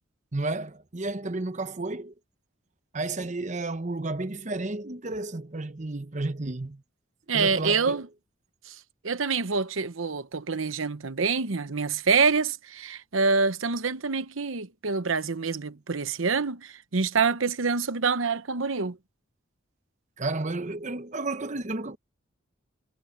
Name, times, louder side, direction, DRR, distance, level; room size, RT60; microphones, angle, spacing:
voice 1, 0.3-2.1 2.9-6.8 7.3-8.0 20.2-22.0, right 2 dB, 35° right, 1.0 m, -32 dB
voice 2, 7.3-8.1 8.7-8.8 9.0-19.0, right 4 dB, 80° right, 1.0 m, -26 dB
head